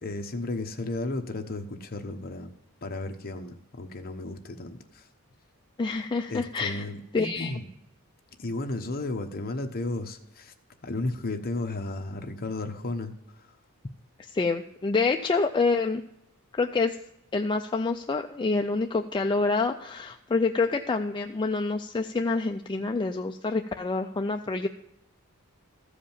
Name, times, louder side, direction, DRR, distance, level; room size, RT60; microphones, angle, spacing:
voice 1, 0.0-2.5 2.8-5.1 6.3-7.7 8.4-10.5 10.8-13.1, left 2 dB, 45° left, 5 dB, 1.0 m, -33 dB
voice 2, 5.8-6.8 7.1-7.6 14.2-16.0 16.5-17.0 17.3-24.7, left 3 dB, 20° left, 5 dB, 0.4 m, -27 dB
14.0 x 5.0 x 7.2 m, 0.85 s
head